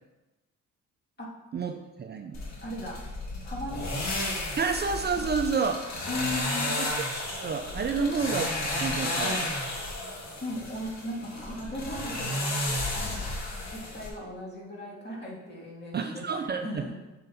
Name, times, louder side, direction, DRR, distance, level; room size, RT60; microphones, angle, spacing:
voice 1, 1.5-2.4 4.6-5.8 6.8-6.9 7.3-9.5 15.9-16.8, right 5 dB, 35° right, 5 dB, 0.5 m, -29 dB
sound 1, 2.3-14.1, left 1 dB, 60° left, 1.9 m, -33 dB
voice 2, 2.6-3.0 3.4-4.0 5.6-5.8 6.1-6.7 7.9-8.1 10.4-13.2 13.7-16.9, left 1 dB, 35° left, -3 dB, 2.2 m, -37 dB
7.9 x 6.5 x 2.8 m, 1.1 s
cardioid pair, 90°, 30 cm